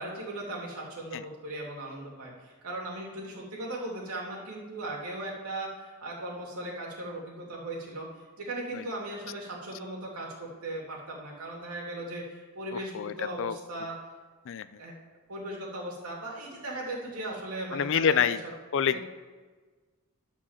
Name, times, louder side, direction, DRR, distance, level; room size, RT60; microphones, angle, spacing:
voice 1, 0.0-8.1 8.4-13.9 14.8-15.0 15.3-19.0, right 1 dB, 80° right, -2 dB, 2.5 m, -38 dB
voice 2, 17.7-18.4 18.7-19.0, left 8 dB, 60° left, 15 dB, 0.4 m, -26 dB
11.0 x 4.6 x 7.2 m, 1.4 s
head